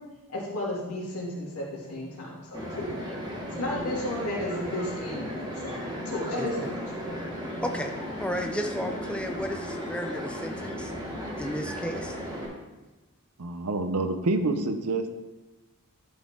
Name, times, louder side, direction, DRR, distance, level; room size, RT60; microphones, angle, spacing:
voice 1, 0.3-3.0 3.5-5.8 6.0-6.8, left 1 dB, 80° left, -4 dB, 2.7 m, -33 dB
sound 1, 2.5-12.4, equal, 20° right, 1.7 m, -35 dB
voice 2, 6.4-6.7 7.6-10.9 11.4-12.2, equal, 5° left, 3 dB, 0.5 m, -33 dB
voice 3, 13.4-15.1, right 2 dB, 90° right, 8 dB, 0.8 m, -27 dB
11.5 x 6.1 x 3.8 m, 1.1 s
head